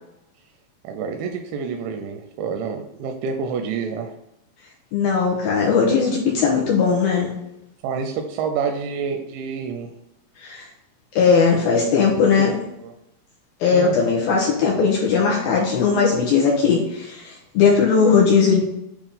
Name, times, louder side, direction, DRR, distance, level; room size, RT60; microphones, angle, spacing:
voice 1, 0.8-4.1 7.8-9.9 12.4-12.5 12.8-12.9 13.7-14.0, right 5 dB, 85° right, 4 dB, 2.9 m, -28 dB
voice 2, 4.9-7.3 10.4-10.7 11.1-12.5 13.6-18.6, left 5 dB, 75° left, -3 dB, 2.3 m, -18 dB
8.5 x 3.0 x 5.2 m, 0.86 s
omnidirectional pair, 5.2 m